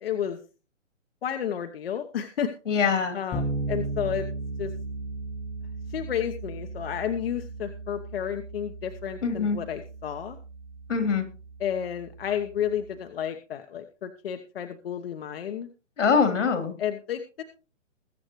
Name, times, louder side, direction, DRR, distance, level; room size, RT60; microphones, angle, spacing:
voice 1, 0.0-0.4 1.2-2.5 3.1-4.3 4.6-4.7 5.9-10.4 11.6-15.7 16.8-17.4, left 9 dB, 50° left, 7 dB, 1.1 m, -31 dB
voice 2, 2.7-3.2 9.2-9.6 10.9-11.3 16.0-16.7, left 5 dB, 75° left, 7 dB, 3.4 m, -23 dB
Bass guitar, 3.3-13.0, right 2 dB, 10° left, 1.0 m, -36 dB
21.5 x 7.9 x 3.1 m, 0.34 s
hypercardioid pair, 155°, 37 cm